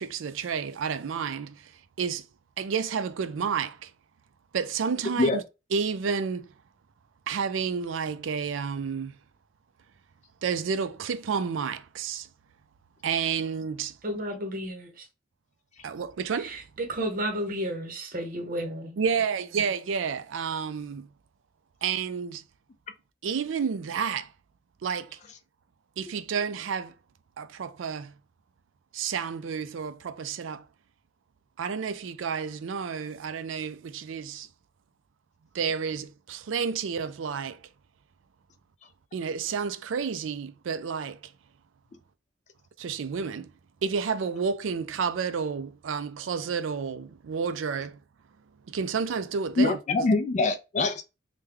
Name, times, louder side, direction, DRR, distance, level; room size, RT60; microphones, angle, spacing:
voice 1, 0.0-1.7 2.0-2.3 2.6-3.9 4.5-5.4 5.7-6.5 7.3-9.2 10.4-12.3 13.0-14.0 15.8-16.6 19.0-21.1 21.8-22.4 23.2-24.3 24.8-25.2 26.0-26.9 27.4-28.1 28.9-30.7 31.6-34.5 35.5-37.6 39.1-41.3 42.8-43.5 43.8-48.0 48.7-50.1, right 6 dB, 85° right, 0.4 m, -30 dB
voice 2, 14.0-15.1 16.3-19.0, equal, 50° right, 0.8 m, -32 dB
voice 3, 49.6-51.0, left 3 dB, 40° left, 0.3 m, -24 dB
3.4 x 2.2 x 3.3 m
head